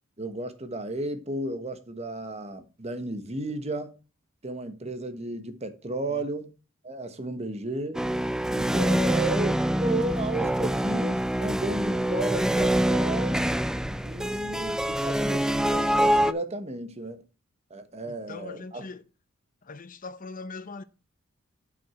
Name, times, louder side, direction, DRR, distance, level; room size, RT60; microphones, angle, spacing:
voice 1, 0.2-4.0 4.4-6.5 6.8-8.0 8.5-13.5 14.0-17.2 17.7-18.8, right 2 dB, 30° right, 1.3 m, -33 dB
sound 1, 7.9-16.3, right 1 dB, 5° right, 0.4 m, -25 dB
voice 2, 18.0-19.0 19.6-20.8, left 3 dB, 40° left, 0.8 m, -41 dB
11.5 x 6.3 x 4.4 m
head